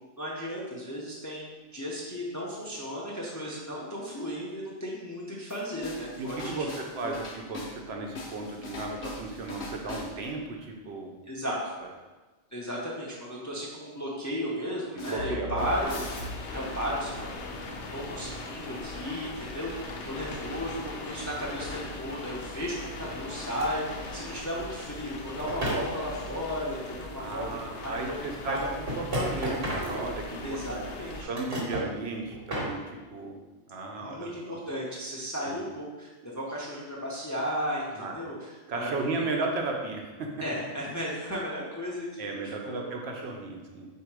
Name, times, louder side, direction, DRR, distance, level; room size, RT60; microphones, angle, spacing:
voice 1, 0.2-6.6 7.0-7.1 11.3-11.6 12.5-16.0 16.5-17.5 17.9-28.6 30.4-31.3 34.0-39.3 40.4-42.3 42.6-42.8, equal, 20° left, -5 dB, 0.5 m, -35 dB
sound 1, 5.5-7.9 8.1-10.4 15.0-16.8, left 2 dB, 55° left, 0.9 m, -40 dB
voice 2, 6.2-11.2 14.9-15.8 27.2-28.6 29.0-30.8 31.2-33.4 33.7-34.6 35.5-35.6 37.9-38.1 38.7-40.3 42.2-43.9, right 3 dB, 70° right, 1 dB, 0.9 m, -35 dB
sound 2, 15.6-31.2, left 2 dB, 90° left, 0.9 m, -40 dB
sound 3, 23.6-23.7 25.4-25.9 27.6-27.7 28.6-30.5 31.1-31.9 32.3-32.8, right 1 dB, 55° right, 1.2 m, -32 dB
3.8 x 2.7 x 4.6 m, 1.2 s
omnidirectional pair, 1.1 m